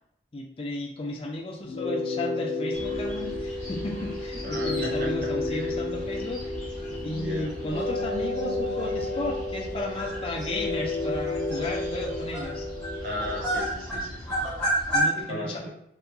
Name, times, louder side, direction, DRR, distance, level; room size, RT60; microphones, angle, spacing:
voice 1, 0.3-6.5 7.0-12.7 14.9-15.7, left 1 dB, 30° left, 0 dB, 0.4 m, -34 dB
sound 1, 1.6-13.6, left 2 dB, 80° left, 0.6 m, -31 dB
sound 2, 2.7-15.0, right 1 dB, 5° left, 0.8 m, -35 dB
voice 2, 4.4-5.1 5.5-5.7 7.0-7.5 13.0-14.4 15.1-15.7, equal, 50° right, -3 dB, 0.6 m, -36 dB
2.8 x 2.5 x 2.2 m, 0.78 s
head